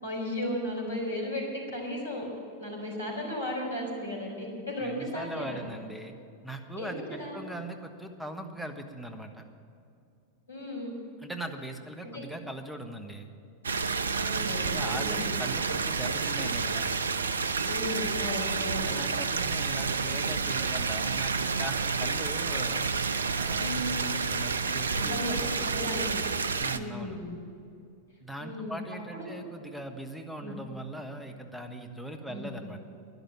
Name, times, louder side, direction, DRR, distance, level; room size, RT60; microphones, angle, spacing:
voice 1, 0.0-2.3 2.6-5.7 6.8-7.4 10.5-10.9 12.0-12.2 14.2-15.3 17.6-18.9 23.6-23.9 24.9-26.3 26.7-27.4 28.4-28.8 29.1-29.4 30.4-30.6 32.3-32.6, left 1 dB, 75° left, -1 dB, 4.2 m, -35 dB
voice 2, 4.8-6.1 6.4-9.4 11.2-13.3 14.6-17.0 18.8-22.8 23.4-25.7 26.6-27.2 28.2-32.8, right 1 dB, ahead, 6 dB, 1.3 m, -40 dB
sound 1, 13.6-26.8, right 5 dB, 70° right, 0.5 m, -29 dB
12.0 x 11.0 x 8.7 m, 2.6 s
figure-of-eight pair, 90°, 0 cm